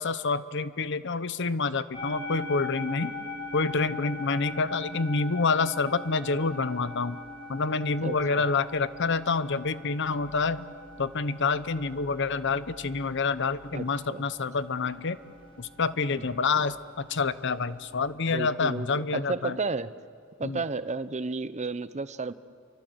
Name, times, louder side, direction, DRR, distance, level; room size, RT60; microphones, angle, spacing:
voice 1, 0.0-3.2 3.5-7.2 7.5-10.7 11.0-15.2 15.6-19.6 20.4-20.6, left 4 dB, 60° left, 14 dB, 0.9 m, -28 dB
sound 1, 1.9-18.1, left 2 dB, 25° left, 5.8 m, -42 dB
voice 2, 8.0-8.4 13.7-14.3 18.3-19.9 20.4-22.3, right 3 dB, 35° right, 14 dB, 0.8 m, -32 dB
29.5 x 24.5 x 8.0 m, 2.3 s
head